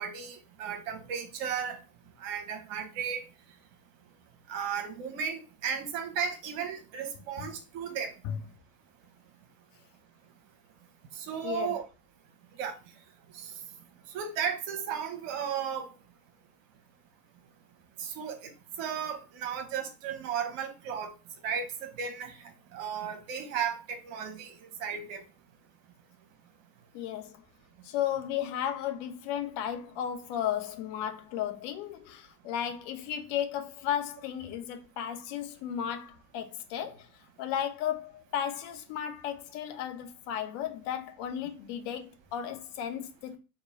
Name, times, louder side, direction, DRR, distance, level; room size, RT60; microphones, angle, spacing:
voice 1, 0.0-1.8 2.2-3.2 4.5-8.1 11.2-11.9 12.6-12.8 13.4-13.5 14.1-15.9 18.0-18.5 18.8-21.1 21.4-22.4 22.7-24.5 24.8-25.2, right 7 dB, 55° right, 0.9 m, -34 dB
voice 2, 11.4-11.7 26.9-27.4 27.8-37.1 37.4-43.4, left 10 dB, 55° left, 0.7 m, -34 dB
3.0 x 2.2 x 4.0 m
hypercardioid pair, 80°, 47 cm